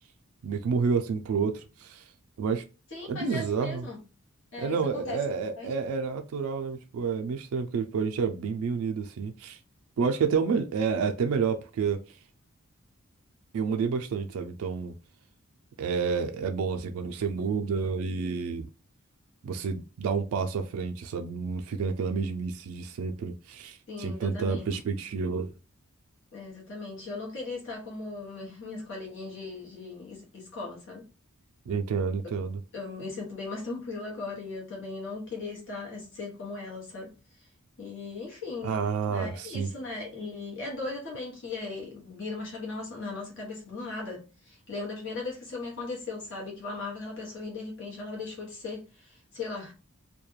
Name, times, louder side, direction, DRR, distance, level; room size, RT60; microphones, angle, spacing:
voice 1, 0.4-2.1 2.4-2.6 3.1-3.8 4.6-9.6 10.0-12.0 13.5-14.9 15.8-18.7 19.4-25.5 31.7-32.6 38.6-39.7, right 5 dB, 80° right, 0.3 m, -29 dB
voice 2, 2.9-4.0 4.5-5.2 5.6-5.7 23.9-24.6 26.3-31.0 32.7-37.5 37.8-38.8 39.1-49.7, left 3 dB, 60° left, 0.9 m, -38 dB
2.3 x 2.1 x 3.0 m
head